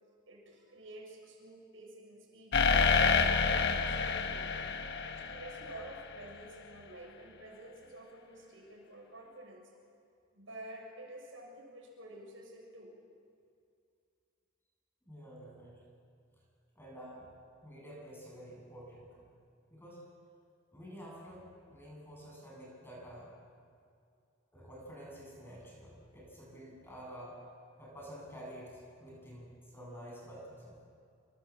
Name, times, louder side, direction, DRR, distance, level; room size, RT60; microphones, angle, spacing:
voice 1, 0.3-2.6 3.1-4.6 5.1-9.7 10.3-12.9, right 1 dB, 70° right, 0 dB, 6.9 m, -50 dB
sound 1, 2.5-6.2, left 5 dB, 55° left, 1.3 m, -28 dB
voice 2, 15.1-15.8 16.7-17.3 17.6-19.2 19.7-20.0 20.7-23.3 24.5-27.4 27.8-28.7 29.0-30.8, equal, 10° left, -3 dB, 8.0 m, -49 dB
27.5 x 26.5 x 7.6 m, 2.4 s
head